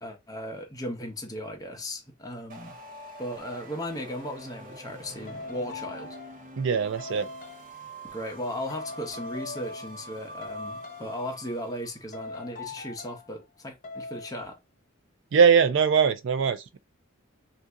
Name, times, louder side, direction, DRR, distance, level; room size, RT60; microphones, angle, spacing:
voice 1, 0.0-2.8 3.2-6.2 8.0-14.6, equal, 15° left, 0.8 m, -36 dB
sound 1, 2.5-12.1, right 1 dB, 40° right, 0.7 m, -45 dB
sound 2, 4.3-4.4 5.3-6.5 7.0-7.7 8.7-10.1 10.4-11.3 12.1-13.3 13.8-14.4, left 3 dB, 40° left, 0.9 m, -41 dB
voice 2, 6.6-7.3 15.3-16.8, right 6 dB, 60° right, 0.4 m, -21 dB
2.7 x 2.5 x 3.5 m
head